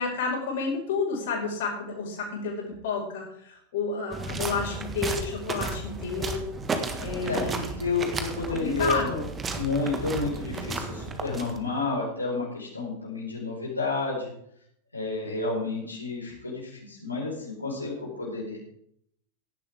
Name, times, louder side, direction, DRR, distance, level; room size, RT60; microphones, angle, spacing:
voice 1, 0.0-6.4 7.0-7.7 8.5-9.3, left 4 dB, 55° left, -3 dB, 5.2 m, -30 dB
sound 1, 4.1-11.8, right 3 dB, 20° right, 1.8 m, -33 dB
voice 2, 7.2-9.1 9.5-14.3 14.9-18.6, left 3 dB, 85° left, -4 dB, 5.0 m, -30 dB
17.5 x 11.0 x 3.6 m, 0.70 s
figure-of-eight pair, 90°, 0 cm